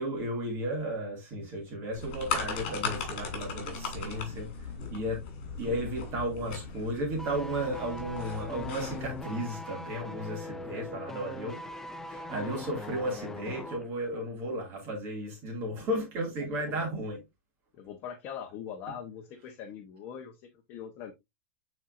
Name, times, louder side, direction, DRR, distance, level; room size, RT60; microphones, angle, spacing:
voice 1, 0.0-5.2 5.6-11.6 12.1-17.2, right 1 dB, 30° right, 2.3 m, -34 dB
sound 1, 1.9-9.2, left 5 dB, 50° left, 4.1 m, -37 dB
sound 2, 7.2-13.9 14.1-14.3, left 2 dB, 5° left, 0.4 m, -41 dB
voice 2, 16.4-16.8 17.7-21.1, left 8 dB, 30° left, 1.0 m, -42 dB
9.1 x 4.3 x 2.6 m
supercardioid pair, 165°, 7 cm